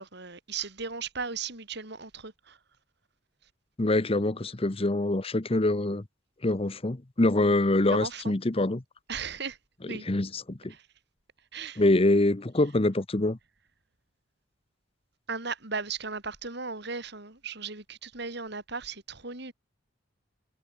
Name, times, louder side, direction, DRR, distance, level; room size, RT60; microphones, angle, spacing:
voice 1, 0.0-2.6 7.8-8.3 9.1-9.6 9.9-10.1 10.7-10.9 11.5-11.8 15.3-19.5, right 5 dB, 60° right, 4.5 m, -36 dB
voice 2, 3.8-6.0 6.4-8.8 10.0-10.7 11.8-13.4, left 2 dB, 30° left, 1.0 m, -25 dB
head